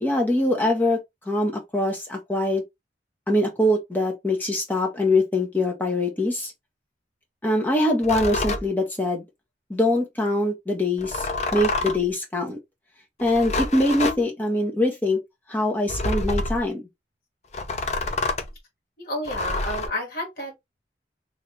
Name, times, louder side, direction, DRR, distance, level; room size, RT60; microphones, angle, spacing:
voice 1, 0.0-1.0 1.3-2.6 3.3-6.5 7.4-9.2 9.7-12.6 13.2-15.2 15.5-16.8, left 1 dB, 10° left, 0.9 m, -23 dB
sound 1, 8.0-8.7 11.0-12.1 13.2-14.2 15.9-16.6 17.5-18.5 19.3-19.9, left 2 dB, 35° left, 0.5 m, -27 dB
voice 2, 19.0-20.5, left 1 dB, 50° left, 1.6 m, -30 dB
3.2 x 2.7 x 3.2 m
head